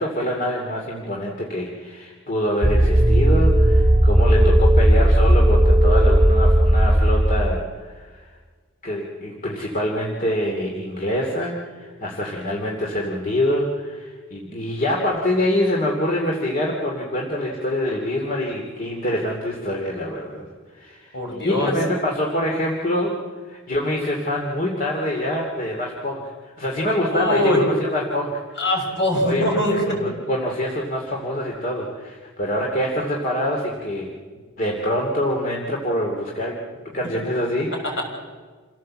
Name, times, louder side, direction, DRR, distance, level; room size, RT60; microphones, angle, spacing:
voice 1, 0.0-8.3 8.8-20.5 20.7-21.2 21.4-23.2 23.5-28.6 29.2-34.1 34.6-36.6 36.9-38.0, left 1 dB, 40° left, -1 dB, 2.6 m, -25 dB
sound 1, 2.6-7.6, right 1 dB, 10° right, 1.4 m, -15 dB
voice 2, 21.1-21.7 27.1-27.6 28.6-30.0 38.0-38.1, left 1 dB, 60° left, 1 dB, 6.4 m, -22 dB
28.0 x 17.0 x 7.6 m, 1.5 s
head